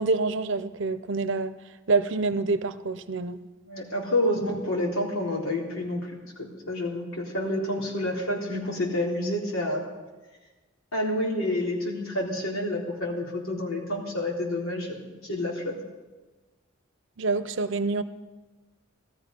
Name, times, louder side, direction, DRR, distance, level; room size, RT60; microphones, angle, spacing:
voice 1, 0.0-1.6 1.9-3.4 17.2-18.0, right 3 dB, 60° right, 0.7 m, -26 dB
voice 2, 3.6-6.1 6.4-9.8 10.9-15.7, left 1 dB, 85° left, 3.8 m, -29 dB
18.0 x 13.5 x 5.3 m
head